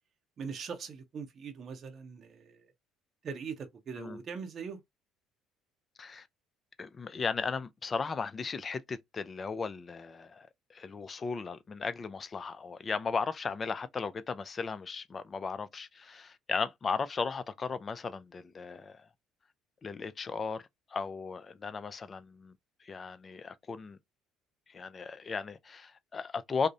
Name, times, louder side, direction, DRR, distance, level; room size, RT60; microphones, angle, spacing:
voice 1, 0.4-2.7 3.2-4.8, right 6 dB, 50° right, 0.5 m, -41 dB
voice 2, 6.8-19.1 19.8-20.6 20.9-22.5 22.8-24.0 24.7-26.7, left 5 dB, 35° left, 0.4 m, -36 dB
2.5 x 2.0 x 2.6 m
hypercardioid pair, 65°, 0 cm